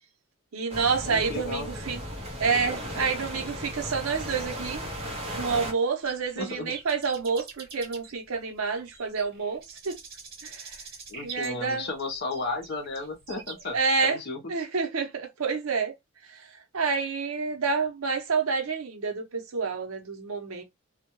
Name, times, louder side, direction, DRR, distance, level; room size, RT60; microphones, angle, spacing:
voice 1, 0.5-2.0 2.4-4.8 5.3-10.0 10.4-10.8 11.2-11.9 13.7-14.2 14.5-15.9 16.3-16.5 16.7-20.6, right 5 dB, 85° right, 0.7 m, -28 dB
sound 1, 0.7-5.7, equal, 30° right, 0.6 m, -36 dB
voice 2, 1.0-1.7 6.4-6.7 11.1-14.5, left 3 dB, 50° left, 0.7 m, -34 dB
sound 2, 6.0-13.8, right 5 dB, 50° right, 1.0 m, -45 dB
2.2 x 2.2 x 2.9 m
head